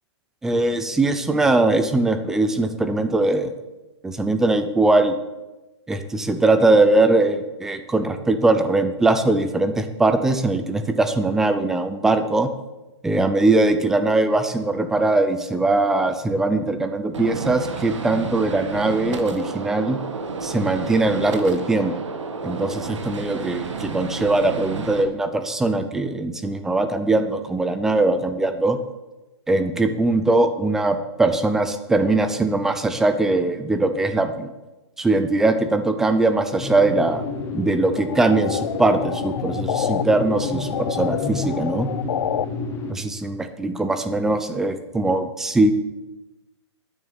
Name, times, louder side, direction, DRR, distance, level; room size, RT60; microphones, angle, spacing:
voice 1, 0.4-3.5 4.0-5.1 5.9-12.5 13.0-20.0 20.4-21.9 22.4-28.8 29.5-34.5 35.0-37.2 37.5-41.9 43.0-45.7, right 2 dB, 5° right, 9 dB, 0.5 m, -21 dB
Gunshot gunfire, 17.1-25.0, right 4 dB, 80° right, 2.1 m, -31 dB
sound 1, 36.6-42.9, left 3 dB, 15° left, 1.3 m, -30 dB
sound 2, 38.0-40.0 40.4-42.5, left 9 dB, 70° left, 0.5 m, -28 dB
11.0 x 9.6 x 8.3 m, 1.1 s
hypercardioid pair, 170°, 15 cm